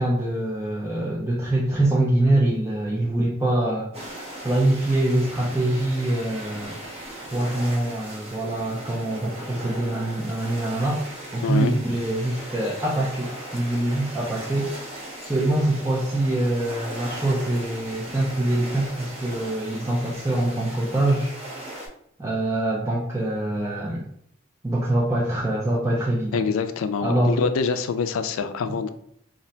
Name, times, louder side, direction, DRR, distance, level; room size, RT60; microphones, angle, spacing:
voice 1, 0.0-6.8 7.2-11.0 11.3-14.7 15.2-21.3 22.2-24.1 24.6-26.4 27.0-27.4, right 1 dB, 15° right, -5 dB, 0.3 m, -24 dB
sound 1, 3.9-21.9, right 1 dB, 30° right, 0.7 m, -38 dB
voice 2, 11.4-11.7 26.3-28.9, left 5 dB, 80° left, 10 dB, 0.3 m, -25 dB
2.4 x 2.1 x 3.9 m, 0.68 s
head